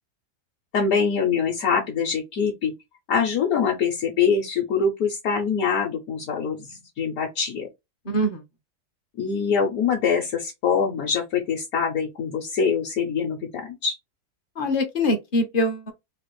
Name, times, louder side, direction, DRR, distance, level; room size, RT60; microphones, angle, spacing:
voice 1, 0.7-2.7 3.1-7.7 9.2-14.0, left 6 dB, 70° left, 1.1 m, -24 dB
voice 2, 8.0-8.4 14.6-15.9, left 1 dB, 50° left, 0.7 m, -23 dB
3.2 x 2.4 x 3.0 m
omnidirectional pair, 1.7 m